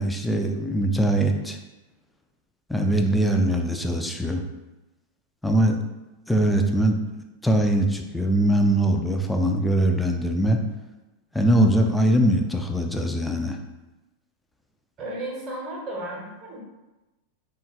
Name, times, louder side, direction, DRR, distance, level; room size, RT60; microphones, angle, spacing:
voice 1, 0.0-1.6 2.7-4.4 5.4-5.8 6.3-7.0 7.4-10.6 11.3-13.6, right 1 dB, 5° left, 3 dB, 0.3 m, -22 dB
voice 2, 15.0-16.6, right 1 dB, 30° right, -2 dB, 0.8 m, -34 dB
3.6 x 2.2 x 2.6 m, 1.0 s
figure-of-eight pair, 90°, 0 cm